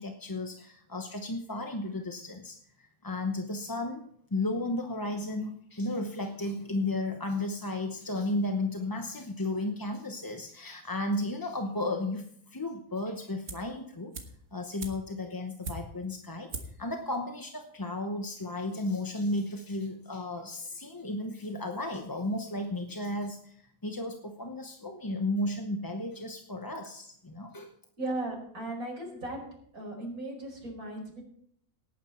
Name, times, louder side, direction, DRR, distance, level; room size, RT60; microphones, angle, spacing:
voice 1, 0.0-4.0 4.3-14.1 14.5-16.5 16.8-27.7, left 2 dB, 20° left, 4 dB, 0.7 m, -34 dB
sound 1, 13.5-13.8 14.1-16.1 16.5-16.9 17.1-17.2, right 2 dB, 55° right, 1.8 m, -41 dB
voice 2, 28.0-29.4 29.7-31.2, right 2 dB, 75° right, -1 dB, 5.4 m, -36 dB
18.0 x 9.5 x 4.3 m, 0.65 s
omnidirectional pair, 1.5 m